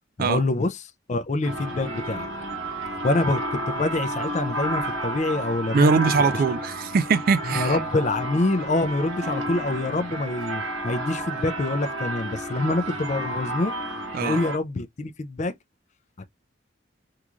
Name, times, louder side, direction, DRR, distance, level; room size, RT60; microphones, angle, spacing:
voice 1, 0.2-0.8 1.1-2.3 3.0-5.9 7.5-13.7 14.2-15.5 16.2-16.3, left 2 dB, 35° left, 0.4 m, -26 dB
sound 1, 1.4-14.6, right 1 dB, 80° right, 1.1 m, -31 dB
voice 2, 5.7-7.8 14.1-14.4, right 5 dB, 45° right, 0.3 m, -21 dB
3.7 x 3.0 x 2.4 m
head